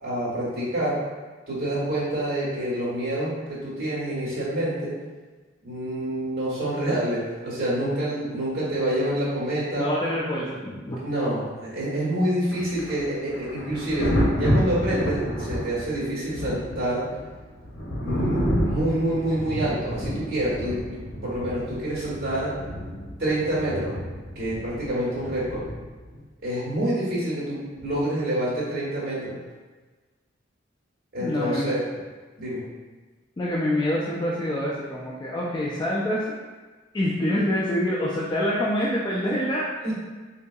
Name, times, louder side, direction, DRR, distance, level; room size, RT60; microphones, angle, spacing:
voice 1, 0.0-1.0 1.5-4.9 5.6-9.9 11.0-17.1 18.0-22.5 23.2-24.0 24.3-25.7 26.4-29.3 31.1-31.8 32.4-32.6 39.8-39.9, right 1 dB, 55° right, -7 dB, 1.3 m, -27 dB
voice 2, 9.7-11.0 31.2-31.7 33.4-36.3 36.9-39.6, left 1 dB, 25° left, -6 dB, 0.3 m, -26 dB
Thunder, 12.5-26.2 27.8-28.0, equal, 80° left, 0.7 m, -29 dB
3.7 x 2.6 x 2.3 m, 1.3 s
head